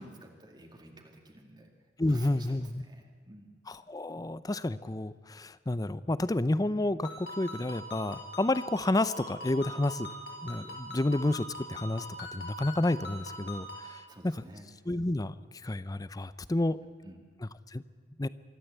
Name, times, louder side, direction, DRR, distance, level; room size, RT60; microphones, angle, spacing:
voice 1, 0.0-1.7 2.0-3.6 14.1-14.7 17.0-17.2, right 1 dB, 25° right, 2 dB, 2.1 m, -51 dB
voice 2, 2.0-2.8 3.7-10.1 10.4-14.4 14.9-15.3 15.6-16.8 17.4-17.8 18.2-18.3, left 2 dB, 20° left, 16 dB, 0.6 m, -30 dB
Ringtone, 7.0-13.9, equal, 70° left, 5.1 m, -42 dB
23.5 x 13.5 x 8.1 m, 1.6 s
head